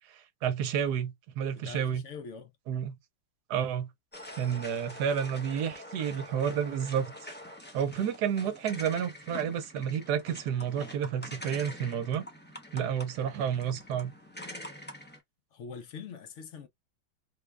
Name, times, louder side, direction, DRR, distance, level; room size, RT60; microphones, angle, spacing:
voice 1, 0.1-2.0 2.7-3.0 3.5-3.9 4.4-7.1 7.7-12.3 12.7-14.1, right 8 dB, 75° right, 1.2 m, -30 dB
voice 2, 1.5-2.5 15.5-16.7, left 6 dB, 65° left, 0.7 m, -43 dB
sound 1, 4.1-15.2, left 1 dB, 15° left, 0.3 m, -45 dB
3.7 x 2.3 x 3.3 m
omnidirectional pair, 1.8 m